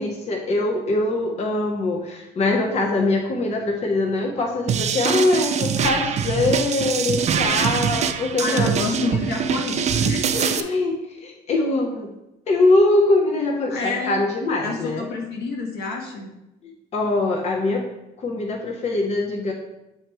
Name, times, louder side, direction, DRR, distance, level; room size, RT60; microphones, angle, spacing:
voice 1, 0.0-8.7 10.4-10.9 11.2-12.1 12.5-15.0 16.9-17.8 18.2-19.5, left 2 dB, 40° left, 1 dB, 0.9 m, -22 dB
sound 1, 4.7-10.6, right 7 dB, 40° right, 0.5 m, -23 dB
voice 2, 8.4-10.7 13.7-14.2 14.6-16.3, left 3 dB, 75° left, 1 dB, 1.6 m, -28 dB
8.7 x 3.0 x 4.7 m, 0.91 s
cardioid pair, 110°, 17 cm